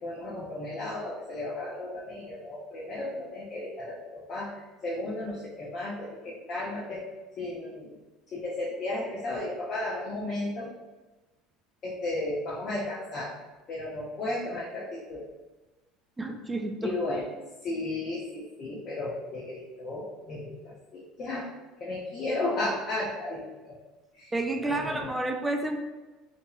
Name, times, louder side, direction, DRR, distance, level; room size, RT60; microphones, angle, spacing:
voice 1, 0.0-7.1 7.4-7.9 8.3-10.7 11.8-13.3 13.7-15.3 16.8-17.2 17.6-21.5 21.8-23.8 24.1-24.3 24.6-25.2, left 2 dB, 45° left, -6 dB, 0.7 m, -34 dB
voice 2, 16.2-16.9 24.3-25.8, right 2 dB, 10° right, 3 dB, 0.3 m, -30 dB
2.8 x 2.6 x 2.3 m, 1.1 s
supercardioid pair, 125°, 0 cm